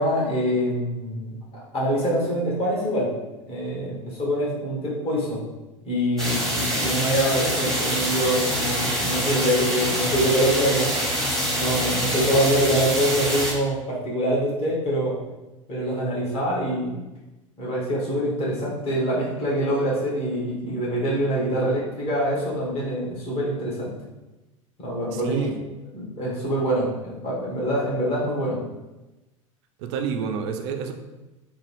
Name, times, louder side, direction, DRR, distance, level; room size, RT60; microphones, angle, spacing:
voice 1, 0.0-1.3 1.7-3.1 3.5-5.4 5.8-10.9 11.5-15.2 15.7-17.0 17.6-23.9 24.8-25.5 25.9-28.6, equal, 35° left, -6 dB, 1.5 m, -25 dB
sound 1, 6.2-13.5, equal, 5° left, 0.9 m, -25 dB
voice 2, 25.1-25.6 29.8-30.9, right 6 dB, 55° right, 6 dB, 0.4 m, -28 dB
3.6 x 2.3 x 3.3 m, 1.0 s
figure-of-eight pair, 80°, 17 cm